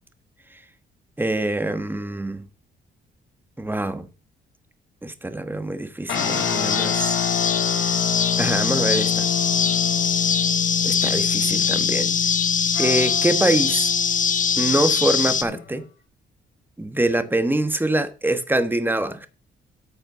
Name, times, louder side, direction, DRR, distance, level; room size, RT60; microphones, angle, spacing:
voice 1, 1.2-2.5 3.6-4.1 5.0-7.1 8.4-9.2 10.8-12.2 12.8-13.9 14.6-15.8 16.8-19.3, right 1 dB, 10° right, 1.2 m, -24 dB
sound 1, 6.1-15.8, left 9 dB, 70° left, 2.7 m, -28 dB
sound 2, 6.1-15.4, left 6 dB, 40° left, 1.0 m, -22 dB
8.8 x 5.6 x 6.8 m
cardioid pair, 90°, 20 cm